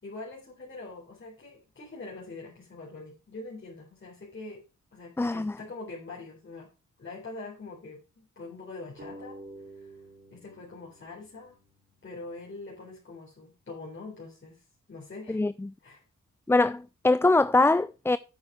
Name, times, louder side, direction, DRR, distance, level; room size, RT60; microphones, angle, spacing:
voice 1, 0.0-4.6 4.9-6.7 7.0-10.0 10.3-11.6 12.0-15.4 15.8-16.0, left 3 dB, 40° left, 4.0 m, -44 dB
voice 2, 5.2-5.6 15.3-15.7 16.5-18.2, left 2 dB, 10° left, 0.3 m, -23 dB
sound 1, 9.0-12.2, right 2 dB, 35° right, 5.0 m, -49 dB
8.9 x 6.3 x 4.9 m
cardioid pair, 75°, 30 cm